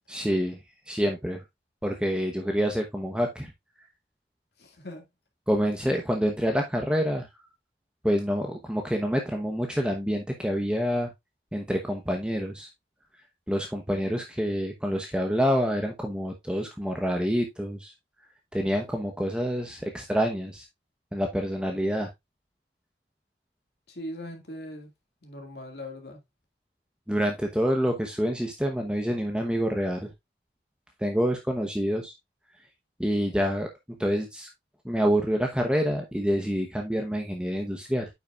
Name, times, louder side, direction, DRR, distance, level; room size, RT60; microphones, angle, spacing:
voice 1, 0.1-0.6 0.9-1.4 1.8-3.5 5.5-7.3 8.0-11.1 11.5-12.7 13.5-17.9 18.5-20.6 21.1-22.1 27.1-30.1 31.0-32.1 33.0-33.7 34.0-34.5 34.8-38.1, equal, 5° right, 0.9 m, -27 dB
voice 2, 4.6-5.0 23.9-24.9 25.2-26.2, left 1 dB, 65° left, 2.0 m, -40 dB
8.8 x 5.8 x 2.4 m
head